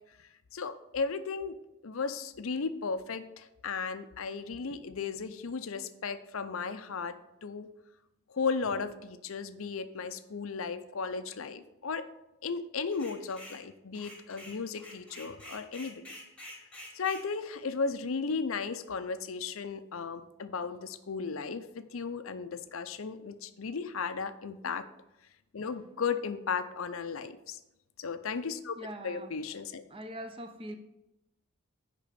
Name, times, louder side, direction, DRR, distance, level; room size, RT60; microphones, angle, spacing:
voice 1, 0.5-7.7 8.3-12.1 12.4-16.0 16.9-24.9 25.5-27.6 28.0-28.8 29.0-29.8, left 5 dB, 75° left, 11 dB, 0.6 m, -35 dB
sound 1, 12.9-13.6 13.9-17.3, left 1 dB, 5° left, 1.4 m, -48 dB
voice 2, 28.8-29.3 29.9-30.8, right 1 dB, 25° right, 7 dB, 0.8 m, -42 dB
10.0 x 3.7 x 6.8 m, 0.92 s
head